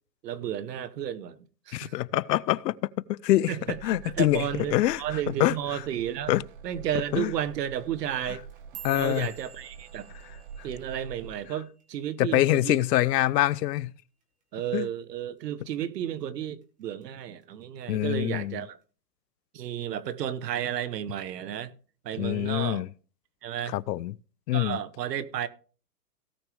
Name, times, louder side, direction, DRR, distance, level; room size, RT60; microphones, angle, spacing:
voice 1, 0.2-1.4 1.7-2.0 3.5-6.3 6.6-8.4 8.9-10.1 10.6-12.8 14.5-18.8 19.5-21.7 22.0-22.8 23.4-23.7 24.5-25.5, right 10 dB, 75° right, 1.1 m, -32 dB
voice 2, 1.7-3.5 3.8-4.4 4.7-5.0 5.4-5.6 6.3-6.4 7.1-7.3 8.8-9.3 12.2-13.9 14.7-14.9 17.9-18.6 22.2-22.9 23.7-24.1 24.5-24.8, left 15 dB, 80° left, 0.6 m, -25 dB
sound 1, 3.6-11.5, right 7 dB, 35° right, 0.4 m, -46 dB
sound 2, 8.3-12.7 13.0-13.4 13.8-14.2 14.6-14.8 15.4-15.8 16.2-17.0 17.4-17.8 18.6-18.7, right 10 dB, 15° right, 1.6 m, -49 dB
17.0 x 6.1 x 3.4 m
hypercardioid pair, 165°, 49 cm